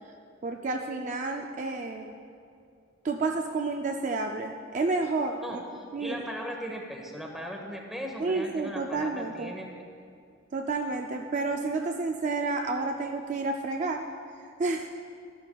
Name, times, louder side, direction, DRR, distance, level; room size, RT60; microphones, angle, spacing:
voice 1, 0.4-2.1 3.0-5.6 5.9-6.2 8.2-9.5 10.5-14.1 14.6-14.9, right 3 dB, 35° right, 3 dB, 0.3 m, -30 dB
voice 2, 5.4-9.7, equal, ahead, 1 dB, 0.9 m, -38 dB
13.5 x 11.0 x 2.3 m, 2.4 s
head